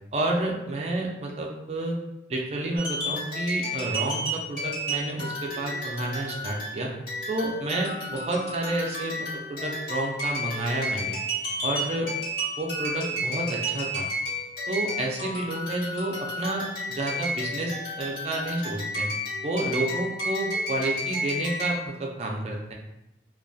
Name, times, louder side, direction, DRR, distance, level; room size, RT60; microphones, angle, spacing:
voice 1, 0.1-2.0 2.3-6.9 7.3-11.2 11.6-12.1 12.6-14.1 14.7-19.1 19.4-22.7, right 2 dB, 35° right, 0 dB, 0.3 m, -30 dB
sound 1, 2.8-21.9, equal, 55° left, 1.3 m, -32 dB
2.3 x 2.2 x 2.6 m, 0.90 s
head